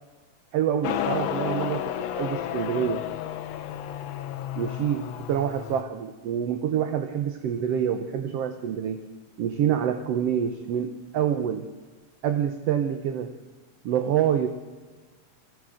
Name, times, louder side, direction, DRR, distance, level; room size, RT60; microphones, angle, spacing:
voice 1, 0.5-3.1 4.6-9.0 9.4-11.7 12.2-13.4 13.8-14.5, right 9 dB, 65° right, 8 dB, 1.8 m, -27 dB
Motorcycle, 0.8-5.8, left 11 dB, 70° left, 1.9 m, -32 dB
22.5 x 16.0 x 7.7 m, 1.3 s
omnidirectional pair, 3.5 m